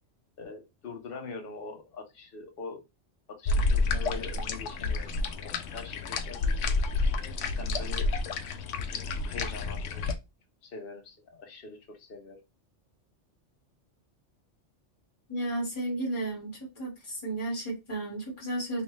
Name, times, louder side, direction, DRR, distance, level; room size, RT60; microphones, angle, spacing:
voice 1, 0.4-2.8 3.4-5.3 5.7-6.6 7.6-8.1 8.9-10.1 10.6-12.4, left 4 dB, 50° left, 1.1 m, -43 dB
sound 1, 3.5-10.2, left 3 dB, 80° left, 0.9 m, -29 dB
voice 2, 15.3-18.8, right 1 dB, 25° left, 1.5 m, -33 dB
3.2 x 2.9 x 3.2 m
omnidirectional pair, 1.2 m